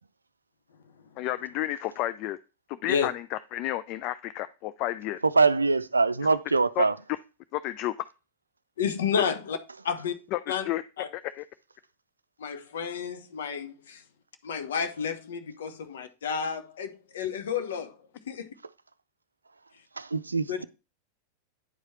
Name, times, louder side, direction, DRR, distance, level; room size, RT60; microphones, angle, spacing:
voice 1, 1.2-2.4 2.7-5.2 6.8-6.9 7.5-8.1 10.3-10.4 10.6-10.8 11.1-11.4, left 14 dB, 40° left, 0.4 m, -31 dB
voice 2, 5.3-7.0 20.0-20.6, right 4 dB, 80° right, 0.4 m, -23 dB
voice 3, 8.8-9.6 9.8-10.1 10.5-11.1 12.4-14.0 14.4-18.0 18.3-18.5 20.5-20.6, left 7 dB, 60° left, 1.2 m, -31 dB
9.8 x 4.8 x 4.2 m
figure-of-eight pair, 90°, 0 cm